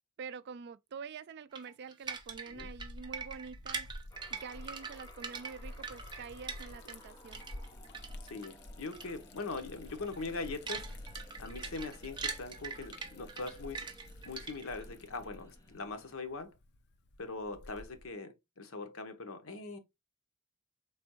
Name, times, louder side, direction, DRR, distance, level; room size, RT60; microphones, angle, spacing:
voice 1, 0.2-3.9 4.3-7.4, right 5 dB, 50° right, 0.3 m, -46 dB
sound 1, 1.5-7.1 7.3-8.5 8.9-9.1 9.4-9.6 10.0-14.8, right 5 dB, 20° right, 0.6 m, -42 dB
Liquid, 2.0-18.1, left 1 dB, 50° left, 0.6 m, -51 dB
sound 2, 4.1-16.1, equal, 15° left, 0.9 m, -59 dB
voice 2, 8.3-10.9 11.4-13.9 14.2-16.5 17.2-19.8, left 3 dB, 75° left, 0.9 m, -41 dB
4.4 x 3.4 x 2.9 m
head